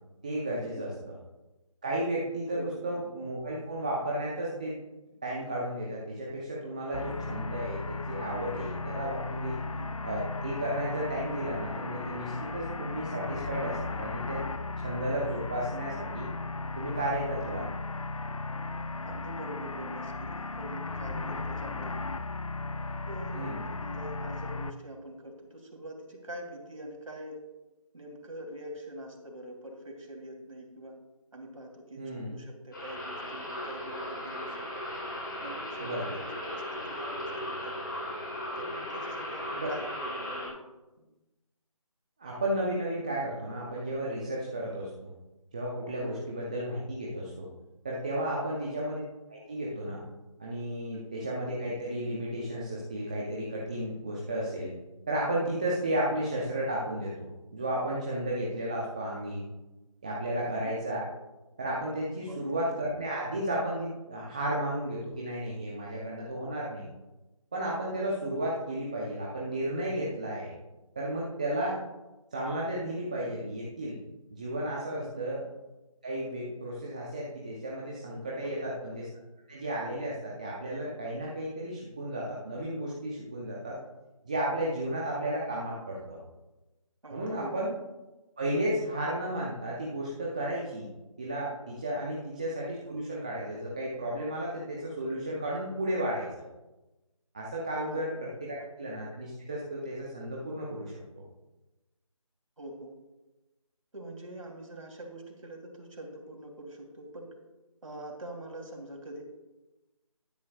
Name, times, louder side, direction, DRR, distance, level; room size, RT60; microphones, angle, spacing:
voice 1, 0.2-1.2 1.8-4.8 5.2-9.6 10.0-14.4 14.8-16.3 16.8-17.7 23.3-23.6 32.0-32.4 35.8-36.2 39.6-39.7 42.2-45.1 45.5-47.5 47.8-49.0 49.3-50.0 50.4-54.7 55.1-59.4 60.0-61.0 61.6-66.9 67.5-70.6 71.0-71.8 72.3-74.0 74.3-75.4 76.0-79.0 79.5-83.8 84.2-86.2 87.1-87.7 88.4-90.9 91.2-96.3 97.3-98.1 98.4-100.9, right 1 dB, 15° right, -5 dB, 0.7 m, -33 dB
voice 2, 2.5-3.0 9.6-9.9 17.6-17.7 19.0-22.1 23.1-27.4 27.9-31.0 31.3-34.8 35.4-37.8 38.6-40.6 41.0-41.1 46.0-46.2 48.6-48.7 50.9-51.2 60.4-60.7 62.3-62.6 75.0-75.2 78.3-78.7 87.0-87.5 97.8-98.0 102.6-102.9 103.9-107.3 107.8-109.3, right 1 dB, 65° right, 1 dB, 3.0 m, -44 dB
sound 1, 6.9-24.7, left 3 dB, 65° left, 0.8 m, -36 dB
sound 2, 32.7-40.5, left 1 dB, 35° left, 3.6 m, -37 dB
13.0 x 11.5 x 2.4 m, 1.1 s
figure-of-eight pair, 165°, 18 cm